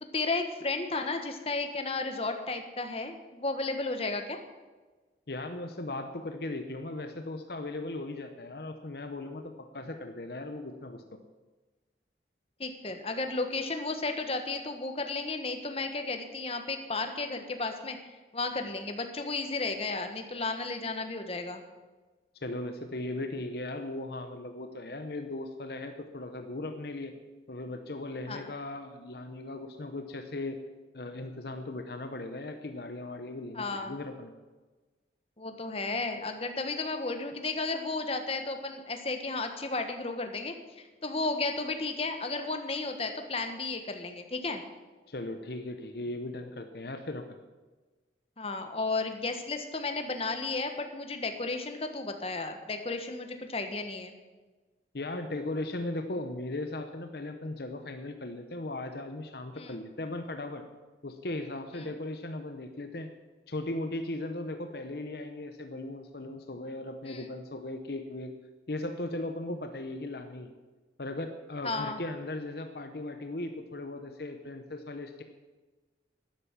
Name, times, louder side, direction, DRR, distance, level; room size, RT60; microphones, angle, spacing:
voice 1, 0.1-4.4 12.6-18.0 18.3-21.6 28.3-28.4 33.5-34.0 35.4-44.6 48.4-54.2 59.6-59.8 61.8-61.9 67.0-67.3 71.6-72.0, left 3 dB, 30° left, 6 dB, 1.3 m, -33 dB
voice 2, 5.3-11.2 22.3-27.2 27.5-30.6 30.9-34.3 45.1-47.2 54.9-60.6 61.0-63.1 63.5-68.3 68.7-70.5 71.0-75.2, left 2 dB, 60° left, 7 dB, 0.9 m, -37 dB
12.0 x 10.5 x 7.2 m, 1.3 s
head